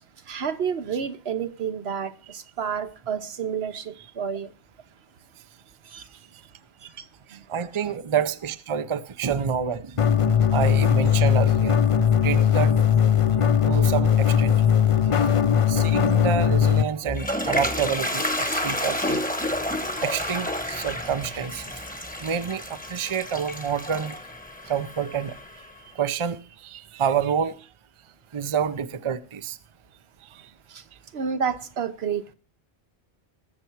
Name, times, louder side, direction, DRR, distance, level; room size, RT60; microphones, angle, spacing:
voice 1, 0.3-4.5 5.9-6.0 6.8-7.0 7.3-7.4 30.7-30.8 31.1-32.3, right 7 dB, 80° right, 1.2 m, -30 dB
voice 2, 7.3-10.1 10.5-11.8 12.2-12.7 13.6-14.7 15.0-15.2 15.7-19.3 20.0-21.8 22.2-24.2 24.7-25.7 25.9-27.7 28.3-29.6 30.2-30.5, right 7 dB, 35° right, 0.6 m, -28 dB
sound 1, 10.0-16.8, left 8 dB, 35° left, 0.6 m, -19 dB
Toilet flush, 16.8-25.7, left 1 dB, 10° left, 1.1 m, -30 dB
20.5 x 6.9 x 4.6 m
omnidirectional pair, 1.1 m